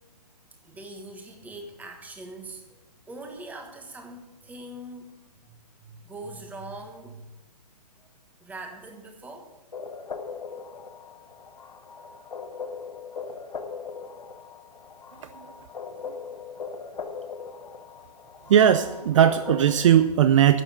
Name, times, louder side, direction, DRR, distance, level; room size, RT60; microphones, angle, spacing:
voice 1, 0.6-2.8 3.1-5.2 5.5-7.3 8.0-8.1 8.4-9.5 12.0-12.5 13.2-13.4 15.9-16.0, right 2 dB, 5° right, 4 dB, 1.3 m, -42 dB
sound 1, 9.7-20.0, left 5 dB, 85° left, 1.3 m, -39 dB
voice 2, 18.5-20.6, right 9 dB, 50° right, 11 dB, 0.5 m, -18 dB
11.0 x 7.1 x 8.0 m, 1.0 s
hypercardioid pair, 145°, 21 cm